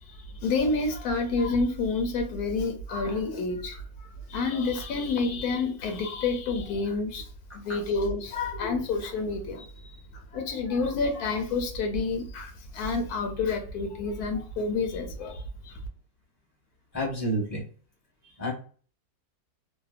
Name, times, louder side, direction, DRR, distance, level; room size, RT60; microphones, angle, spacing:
voice 1, 0.0-7.3 7.5-15.8, left 3 dB, 80° left, 1.1 m, -29 dB
voice 2, 16.9-17.6 18.4-18.5, right 1 dB, 15° right, 0.7 m, -29 dB
2.8 x 2.2 x 2.4 m
omnidirectional pair, 1.6 m